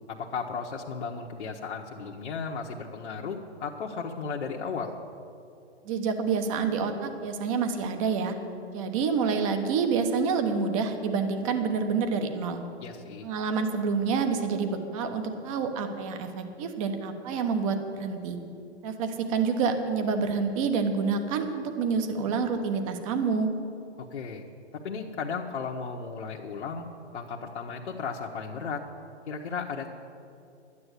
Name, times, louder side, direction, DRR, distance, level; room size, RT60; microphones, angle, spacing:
voice 1, 0.1-5.0 12.8-13.3 24.1-24.5 24.7-28.8 29.3-29.9, left 5 dB, 65° left, -1 dB, 1.2 m, -35 dB
voice 2, 5.8-8.3 8.7-12.6 13.2-18.4 18.8-23.5, right 5 dB, 30° right, 7 dB, 1.2 m, -28 dB
12.0 x 9.8 x 8.2 m, 2.6 s
hypercardioid pair, 150°, 34 cm